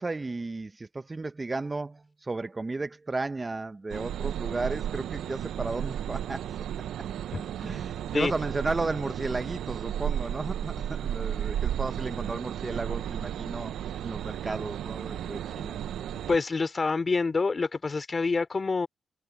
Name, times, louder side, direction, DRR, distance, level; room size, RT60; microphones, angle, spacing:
voice 1, 0.0-6.5 7.6-13.7 14.0-15.8, right 3 dB, 25° right, 0.9 m, -34 dB
sound 1, 3.9-16.4, right 10 dB, 80° right, 0.6 m, -33 dB
voice 2, 16.3-18.9, left 4 dB, 35° left, 2.8 m, -27 dB
cardioid pair, 65°, 0 cm